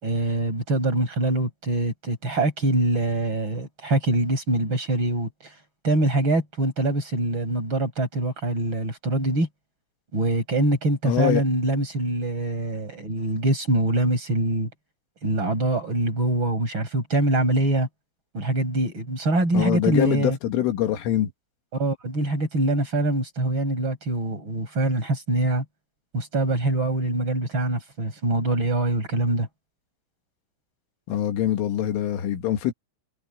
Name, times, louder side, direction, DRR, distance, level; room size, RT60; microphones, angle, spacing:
voice 1, 0.0-5.3 5.8-9.5 10.1-14.7 15.2-17.9 18.3-20.4 21.7-25.6 26.1-29.5, right 2 dB, 25° right, 7.0 m, -24 dB
voice 2, 11.0-11.4 19.5-21.3 31.1-32.7, left 11 dB, 80° left, 4.5 m, -24 dB
omnidirectional pair, 5.7 m